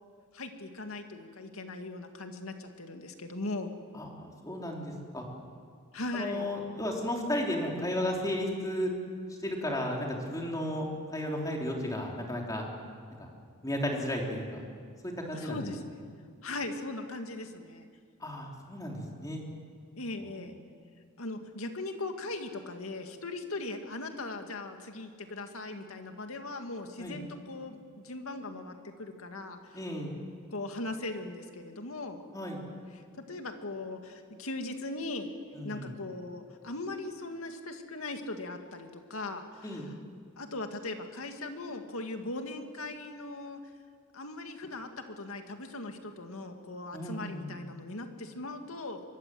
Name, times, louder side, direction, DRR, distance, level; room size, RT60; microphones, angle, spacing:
voice 1, 0.3-3.7 5.9-6.5 15.3-16.0 16.4-17.9 20.0-20.6 21.2-29.8 30.5-32.2 32.9-33.0 33.3-35.3 35.6-40.0 40.4-43.6 44.1-49.0, left 2 dB, 90° left, 5 dB, 2.2 m, -39 dB
voice 2, 3.9-5.2 6.1-8.9 9.4-12.7 13.2-13.3 13.6-14.6 15.0-15.7 18.2-19.4 20.2-20.5 27.0-27.2 29.7-30.1 32.3-32.6 35.5-35.9 39.6-39.9 46.9-47.6, left 1 dB, 15° left, 0 dB, 3.5 m, -34 dB
24.5 x 22.5 x 7.8 m, 2.1 s
head